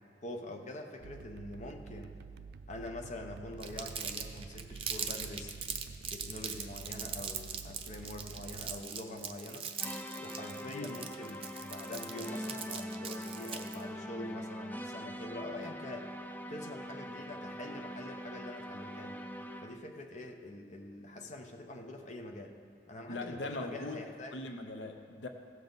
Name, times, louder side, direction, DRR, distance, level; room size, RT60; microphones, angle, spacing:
voice 1, 0.2-2.2 2.7-5.5 6.0-9.7 10.2-16.1 16.5-19.2 19.6-22.6 22.9-24.4, left 1 dB, 40° left, 4 dB, 0.8 m, -45 dB
sound 1, 1.0-8.8, right 5 dB, 60° right, 0.3 m, -49 dB
Crumpling crinkling, 3.6-13.8, right 7 dB, 30° right, 0.7 m, -40 dB
sound 2, 9.8-19.9, equal, 10° left, 0.4 m, -43 dB
voice 2, 10.7-11.0 23.1-24.0 24.3-25.3, left 2 dB, 80° left, 5 dB, 0.6 m, -40 dB
16.0 x 7.1 x 4.0 m, 2.4 s
head